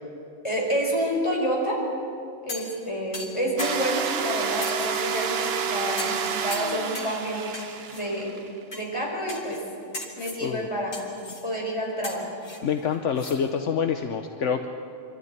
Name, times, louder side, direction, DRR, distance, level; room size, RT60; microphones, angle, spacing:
voice 1, 0.4-1.8 2.4-7.5 7.9-8.3 8.7-9.6 10.1-11.0 11.4-12.3, equal, 25° left, -2 dB, 4.8 m, -28 dB
sound 1, 2.5-2.8 3.1-4.1 4.6-5.5 6.0-6.2 6.5-7.2 7.5-8.0 8.7-8.9 9.3-9.6 9.9-10.4 10.9-11.5 12.0-13.4 13.7-13.8, left 2 dB, 85° left, 2.9 m, -38 dB
sound 2, 3.6-8.6, right 6 dB, 55° right, 1.0 m, -29 dB
voice 2, 12.6-14.7, left 7 dB, 70° left, 6 dB, 1.2 m, -26 dB
26.0 x 13.5 x 9.5 m, 2.7 s
omnidirectional pair, 1.3 m